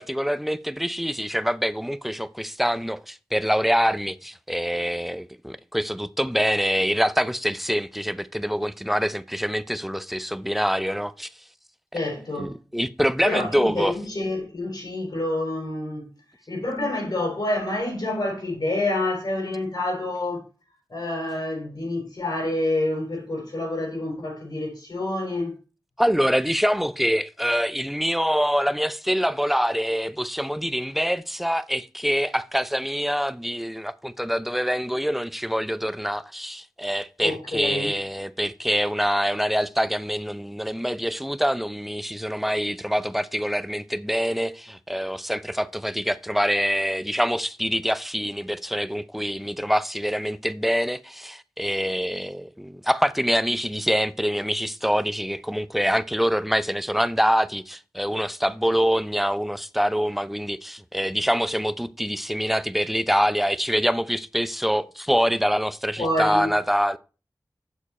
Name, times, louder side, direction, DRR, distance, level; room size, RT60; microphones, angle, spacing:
voice 1, 0.0-11.3 12.4-13.9 26.0-67.0, equal, ahead, 0.5 m, -25 dB
voice 2, 11.9-12.5 13.2-16.1 16.5-20.5 20.9-25.5 37.2-37.9 66.0-66.5, left 1 dB, 65° left, 5.2 m, -28 dB
7.2 x 6.6 x 4.3 m
wide cardioid pair, 55°, 7 cm